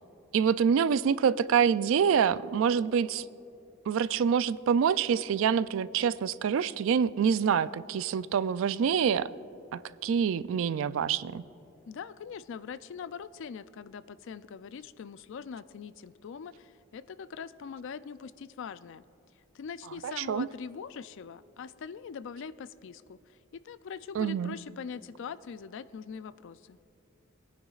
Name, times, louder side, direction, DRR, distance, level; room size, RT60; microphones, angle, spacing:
voice 1, 0.3-3.2 3.9-9.3 9.7-11.4 20.0-20.5 24.2-24.5, right 7 dB, 70° right, 17 dB, 0.3 m, -26 dB
voice 2, 11.9-19.0 19.5-26.8, left 6 dB, 65° left, 15 dB, 0.4 m, -42 dB
21.5 x 10.0 x 2.4 m, 2.9 s
head